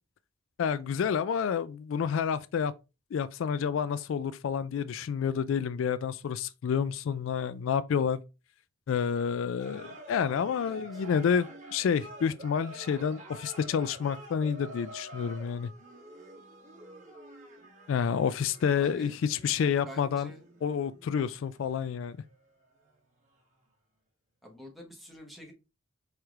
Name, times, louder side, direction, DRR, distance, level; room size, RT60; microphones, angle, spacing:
voice 1, 0.6-2.7 3.1-8.2 8.9-15.7 17.9-20.3 20.6-22.2, left 7 dB, 80° left, 0.3 m, -29 dB
sound 1, 9.6-23.0 23.2-23.4, right 1 dB, 40° right, 1.1 m, -48 dB
voice 2, 10.6-11.0 18.7-19.1 19.6-20.4 24.4-25.5, equal, ahead, 1.3 m, -47 dB
4.6 x 3.3 x 3.5 m
head